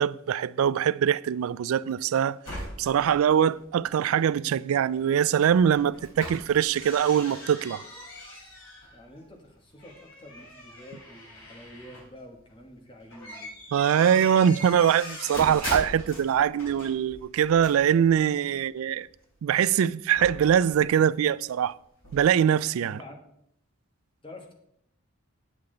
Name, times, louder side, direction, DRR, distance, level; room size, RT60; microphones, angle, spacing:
voice 1, 0.0-7.8 13.7-19.1 19.4-21.7 22.1-23.0, right 8 dB, 80° right, 0.3 m, -23 dB
sound 1, 2.4-4.1 4.9-5.0 5.2-9.4 9.8-12.8 13.1-18.6 19.0-21.0 21.2-21.3 21.6-21.7 22.0-22.2, left 1 dB, 70° left, 3.4 m, -41 dB
voice 2, 8.9-13.5 22.8-23.2 24.2-24.5, left 1 dB, 25° left, 1.3 m, -47 dB
8.5 x 8.5 x 3.8 m
head